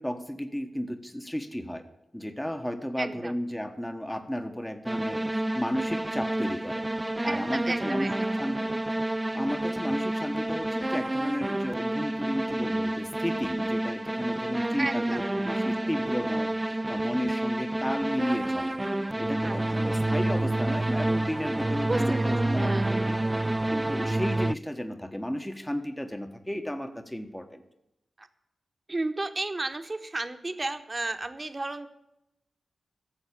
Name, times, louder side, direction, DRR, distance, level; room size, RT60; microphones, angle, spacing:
voice 1, 0.0-1.8 2.1-6.8 7.2-8.6 9.3-18.8 19.2-23.2 23.7-27.6, equal, 10° left, 6 dB, 1.4 m, -33 dB
voice 2, 3.0-3.3 7.3-8.3 14.8-15.2 19.4-19.6 21.9-22.9 28.2-28.3 28.9-31.9, right 2 dB, 35° right, 8 dB, 1.3 m, -33 dB
sound 1, 4.9-24.5, right 1 dB, 20° right, 0.3 m, -29 dB
11.5 x 7.2 x 8.6 m, 0.89 s
cardioid pair, 45°, 0 cm